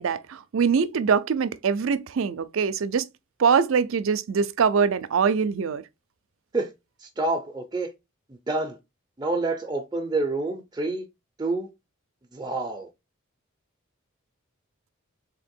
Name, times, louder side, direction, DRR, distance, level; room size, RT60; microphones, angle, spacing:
voice 1, 0.0-3.0 3.4-5.8, right 6 dB, 70° right, 0.4 m, -23 dB
voice 2, 7.0-7.9 8.3-8.8 9.2-11.0 11.4-11.7 12.3-12.9, right 2 dB, 20° right, 0.5 m, -28 dB
3.8 x 2.9 x 4.3 m
head